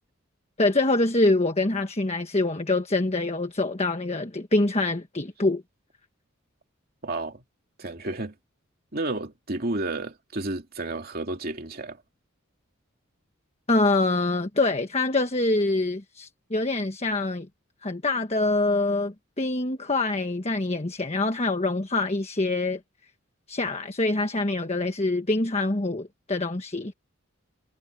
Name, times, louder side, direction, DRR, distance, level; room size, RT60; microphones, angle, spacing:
voice 1, 0.6-5.6 13.7-17.5 17.8-22.8 23.5-26.9, left 2 dB, 30° left, 1.3 m, -25 dB
voice 2, 7.0-7.4 7.8-8.3 8.9-12.0, right 2 dB, 45° right, 2.7 m, -31 dB
head